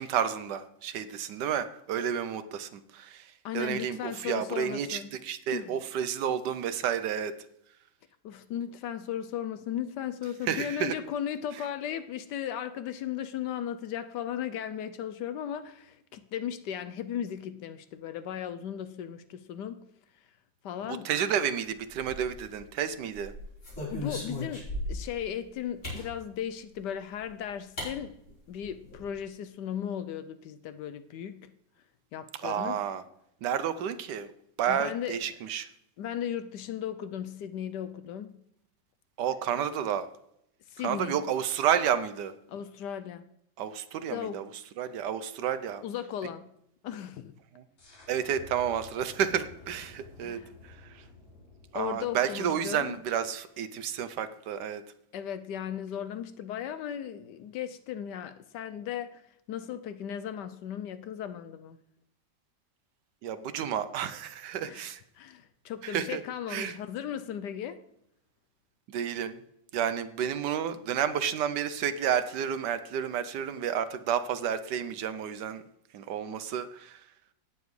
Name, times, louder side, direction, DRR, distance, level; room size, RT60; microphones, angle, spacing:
voice 1, 0.0-7.3 10.4-11.0 21.0-23.3 32.4-33.0 33.4-34.3 34.6-35.7 39.2-40.1 40.8-42.3 43.6-44.5 44.8-45.8 47.6-47.7 48.1-51.0 51.7-54.8 63.2-65.0 65.8-66.2 66.5-66.8 68.9-69.4 69.7-75.6 75.9-77.0, right 8 dB, 70° right, 1.2 m, -31 dB
voice 2, 3.4-5.1 5.5-5.8 8.2-19.8 20.6-21.1 23.9-28.2 28.5-31.5 32.1-32.8 34.7-35.1 36.0-38.3 40.7-41.2 42.5-43.2 44.1-44.4 45.8-46.5 46.8-47.3 50.2-50.5 51.7-53.0 55.1-61.8 64.6-67.8, left 9 dB, 75° left, 1.1 m, -36 dB
sound 1, 21.9-22.6 23.1-25.1 25.8-26.1 27.2-27.3 27.8-27.9 28.3-28.4 28.6-29.0, left 1 dB, 45° left, 5.4 m, -37 dB
sound 2, 47.8-53.3, left 3 dB, 90° left, 4.3 m, -52 dB
17.0 x 7.2 x 3.2 m
omnidirectional pair, 2.0 m